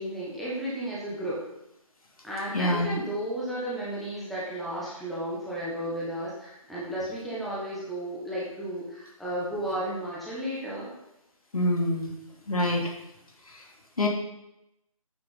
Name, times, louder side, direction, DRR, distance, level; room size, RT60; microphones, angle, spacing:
voice 1, 0.0-1.4 2.2-10.9, right 1 dB, ahead, -8 dB, 1.3 m, -33 dB
voice 2, 2.5-2.9 11.5-12.1 12.5-12.9 14.0-14.1, left 1 dB, 80° left, 0 dB, 2.8 m, -25 dB
9.3 x 6.7 x 5.6 m, 0.87 s
figure-of-eight pair, 160°, 18 cm